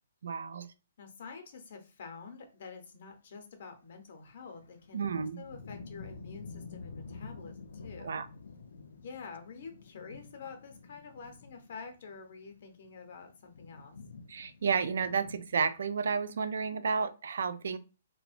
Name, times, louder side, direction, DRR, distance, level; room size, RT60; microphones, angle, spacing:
voice 1, 0.2-0.7 4.9-5.4 8.0-8.3 14.3-17.8, right 5 dB, 70° right, 11 dB, 0.3 m, -31 dB
voice 2, 1.0-8.2 9.0-14.0, left 5 dB, 50° left, 5 dB, 0.7 m, -48 dB
sound 1, 4.4-15.8, left 4 dB, 85° left, 0.4 m, -49 dB
2.8 x 2.1 x 2.4 m, 0.32 s
hypercardioid pair, 165°, 0 cm